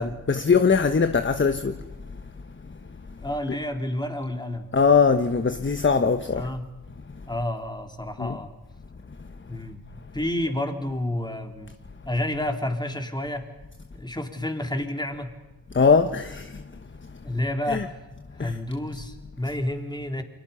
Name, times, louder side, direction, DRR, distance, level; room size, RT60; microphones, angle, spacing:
voice 1, 0.0-1.8 4.7-6.5 8.2-8.4 15.7-16.6 17.7-17.8 18.4-18.5, left 5 dB, 30° left, 1.2 m, -21 dB
voice 2, 3.2-4.7 6.3-6.6 7.3-8.5 9.5-9.8 10.1-11.7 12.0-13.5 13.9-15.3 17.2-17.9 18.3-20.2, left 1 dB, 10° left, 3.4 m, -30 dB
29.5 x 23.5 x 5.7 m
cardioid pair, 60°, 38 cm